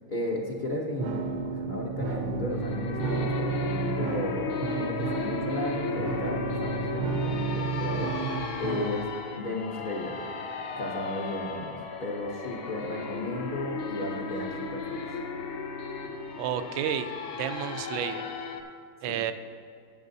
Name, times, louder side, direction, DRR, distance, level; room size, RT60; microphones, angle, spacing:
voice 1, 0.1-9.1 9.4-10.3 10.8-15.0 19.1-19.2, left 1 dB, 60° left, -2 dB, 0.5 m, -34 dB
sound 1, 1.0-9.0, right 5 dB, 65° right, 1.1 m, -32 dB
sound 2, 2.4-18.6, left 5 dB, 80° left, 1.6 m, -35 dB
voice 2, 16.4-17.1 17.4-18.3 19.0-19.3, right 10 dB, 85° right, 10 dB, 1.4 m, -31 dB
14.0 x 8.3 x 2.7 m, 2.5 s
omnidirectional pair, 2.2 m